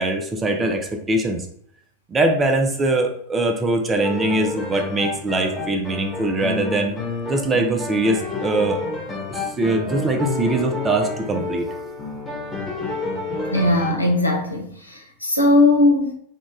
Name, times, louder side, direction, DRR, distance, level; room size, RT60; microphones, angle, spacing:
voice 1, 0.0-1.5 2.1-6.9 7.3-8.8 9.3-11.6, right 2 dB, 20° right, 4 dB, 0.5 m, -22 dB
sound 1, 4.0-13.9, left 3 dB, 10° left, 1.2 m, -29 dB
voice 2, 13.5-16.1, left 2 dB, 85° left, 1 dB, 0.7 m, -18 dB
3.7 x 2.4 x 3.6 m, 0.66 s
figure-of-eight pair, 90°, 0 cm